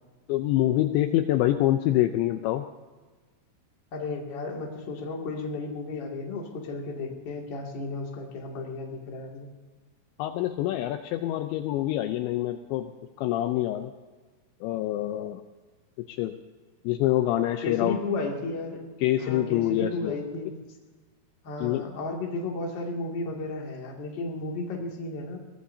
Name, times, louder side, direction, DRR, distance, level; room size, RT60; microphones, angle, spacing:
voice 1, 0.3-2.6 10.2-12.9 13.2-13.9 14.6-15.4 16.1-16.3 16.8-18.0 19.0-20.2 21.6-21.9, left 14 dB, 80° left, 7 dB, 2.7 m, -26 dB
voice 2, 3.9-9.5 17.6-18.9 19.2-20.6 21.4-25.4, left 3 dB, 35° left, -1 dB, 1.9 m, -33 dB
22.5 x 17.5 x 2.8 m, 1.3 s
omnidirectional pair, 5.6 m